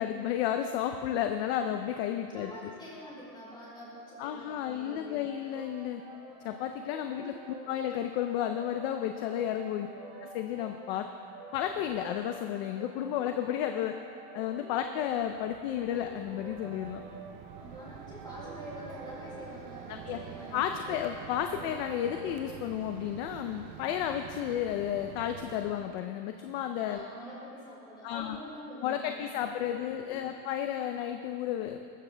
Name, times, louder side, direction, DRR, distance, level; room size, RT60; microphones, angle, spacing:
voice 1, 0.0-2.5 4.2-6.0 6.4-7.3 7.7-9.9 10.2-11.1 11.5-14.0 14.3-17.0 20.1-20.2 20.5-27.0 28.0-28.4 28.8-31.8, left 10 dB, 40° left, 6 dB, 0.6 m, -32 dB
voice 2, 2.3-5.4 7.2-7.5 9.8-9.9 17.4-20.6 26.9-30.4, left 1 dB, 10° left, -7 dB, 4.1 m, -46 dB
sound 1, 5.2-22.6, right 3 dB, 20° right, 2.4 m, -48 dB
Mechanisms, 15.0-26.0, right 11 dB, 65° right, 0.7 m, -47 dB
20.0 x 14.0 x 3.3 m, 2.5 s
supercardioid pair, 180°, 48 cm